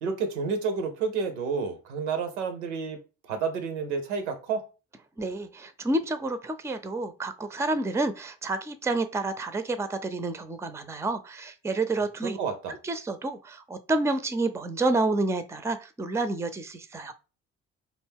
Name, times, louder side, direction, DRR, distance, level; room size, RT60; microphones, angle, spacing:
voice 1, 0.0-4.6 12.2-12.7, right 5 dB, 90° right, 0.6 m, -30 dB
voice 2, 5.2-12.4 12.7-17.1, right 2 dB, 10° right, 0.4 m, -29 dB
2.5 x 2.2 x 3.4 m
hypercardioid pair, 50°, 34 cm